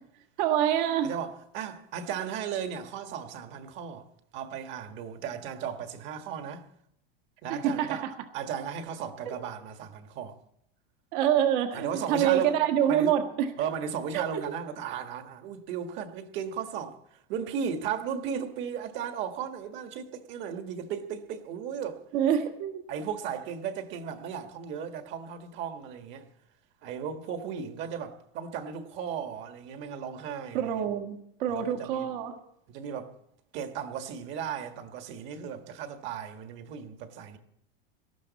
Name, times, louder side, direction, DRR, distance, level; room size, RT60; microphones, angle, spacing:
voice 1, 0.4-1.1 7.5-8.1 9.2-9.4 11.1-13.5 14.1-14.5 22.1-22.8 30.5-32.4, right 10 dB, 55° right, 1.7 m, -26 dB
voice 2, 1.0-4.0 4.3-6.7 7.4-8.0 8.3-10.3 11.7-12.6 12.9-13.2 13.6-22.0 22.9-26.3 26.8-30.8 31.5-32.1 32.7-33.1 33.5-37.4, right 7 dB, 40° right, 1.6 m, -35 dB
19.0 x 13.0 x 4.1 m
supercardioid pair, 155°, 30 cm